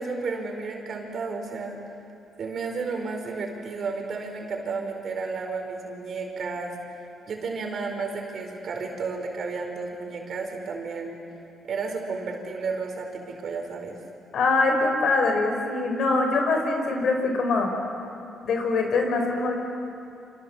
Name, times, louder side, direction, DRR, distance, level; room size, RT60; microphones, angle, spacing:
voice 1, 0.0-1.8 2.4-6.7 7.3-11.2 11.6-14.0, right 4 dB, 55° right, 3 dB, 4.9 m, -32 dB
voice 2, 14.3-17.7 18.4-19.5, left 3 dB, 65° left, 3 dB, 5.5 m, -23 dB
28.0 x 27.0 x 7.4 m, 2.6 s
cardioid pair, 90°, 0 cm